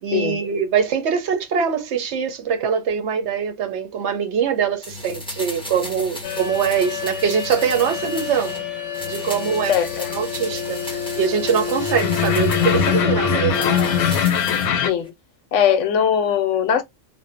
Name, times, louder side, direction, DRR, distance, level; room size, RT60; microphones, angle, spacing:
voice 1, 0.0-8.6 9.1-9.8 10.1-13.9, right 7 dB, 60° right, 0.8 m, -23 dB
sound 1, 4.8-8.6 8.9-13.1 13.5-14.7 15.0-15.1, left 1 dB, 5° left, 0.5 m, -35 dB
sound 2, 6.2-14.9, left 7 dB, 90° left, 1.1 m, -24 dB
voice 2, 9.7-10.2 14.8-15.1 15.5-16.8, left 8 dB, 65° left, 0.9 m, -20 dB
2.6 x 2.1 x 2.5 m
omnidirectional pair, 1.5 m